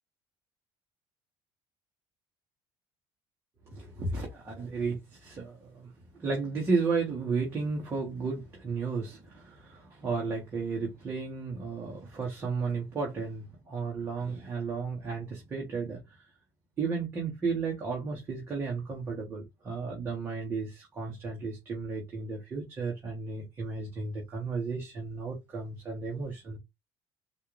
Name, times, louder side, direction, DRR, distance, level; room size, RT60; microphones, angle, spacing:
voice 1, 3.7-16.2 16.8-26.6, right 4 dB, 20° right, 1.3 m, -33 dB
4.2 x 2.6 x 3.2 m
cardioid pair, 170°, 10 cm